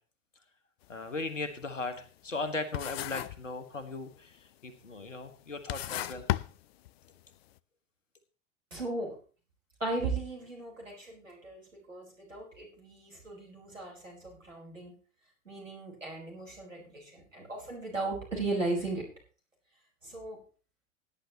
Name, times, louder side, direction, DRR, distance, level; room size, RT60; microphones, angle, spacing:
sound 1, 0.8-1.0 1.4-2.5 2.7-3.5 3.8-4.3 5.0-5.1 5.5-7.2, left 15 dB, 55° left, 0.5 m, -34 dB
voice 1, 0.9-6.3, left 3 dB, 80° left, 11 dB, 1.5 m, -38 dB
voice 2, 8.7-9.1 9.8-14.9 15.4-19.0 20.0-20.4, right 2 dB, 85° right, -2 dB, 4.7 m, -36 dB
17.0 x 9.7 x 3.0 m, 0.38 s
figure-of-eight pair, 85°, 37 cm